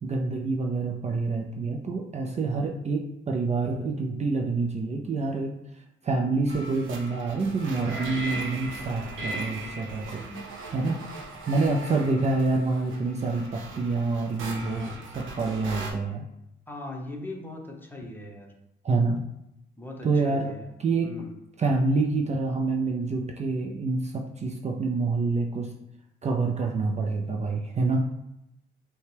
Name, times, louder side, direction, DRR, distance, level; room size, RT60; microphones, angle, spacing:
voice 1, 0.0-5.5 6.0-10.2 10.7-11.0 11.5-16.3 18.8-19.2 20.0-20.5 20.8-21.1 21.6-25.7 26.2-28.1, right 3 dB, 35° right, 2 dB, 0.5 m, -27 dB
sound 1, 6.5-15.9, right 2 dB, 75° right, 0.9 m, -38 dB
voice 2, 16.7-18.5 19.8-20.7 21.0-21.3, left 1 dB, 10° left, 0 dB, 0.9 m, -39 dB
5.5 x 2.2 x 3.3 m, 0.84 s
cardioid pair, 90°, 20 cm